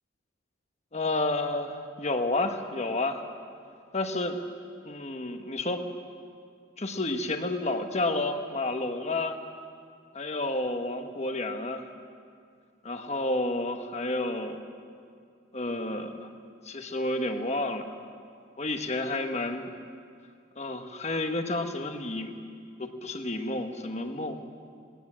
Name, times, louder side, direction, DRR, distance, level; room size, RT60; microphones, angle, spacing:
voice 1, 0.9-3.2 3.9-4.4 4.8-5.9 6.8-9.4 10.1-11.8 12.8-14.6 15.5-16.3 16.6-17.9 18.6-19.7 20.6-22.4 22.8-24.4, left 2 dB, 35° left, 6 dB, 1.3 m, -30 dB
20.0 x 17.5 x 7.5 m, 2.3 s
head